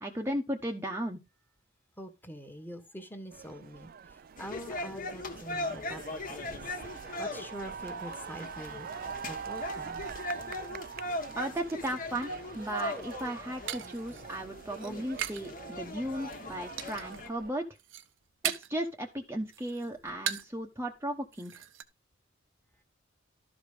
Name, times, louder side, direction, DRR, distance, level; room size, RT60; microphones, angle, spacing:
voice 1, 0.0-1.2 11.4-17.8 18.5-21.6, right 1 dB, 15° right, 1.0 m, -36 dB
voice 2, 2.0-3.9 4.4-6.6 7.2-8.9 9.3-10.0, equal, 10° left, 1.5 m, -44 dB
sound 1, 3.3-17.5, right 7 dB, 50° right, 0.4 m, -45 dB
sound 2, 4.4-17.3, left 1 dB, 45° left, 1.6 m, -40 dB
sound 3, 13.0-15.5 15.8-16.3 16.8-17.3 17.6-18.9 19.2-20.6 20.9-21.0 21.3-21.8, right 10 dB, 65° right, 0.9 m, -38 dB
12.5 x 5.2 x 5.0 m
head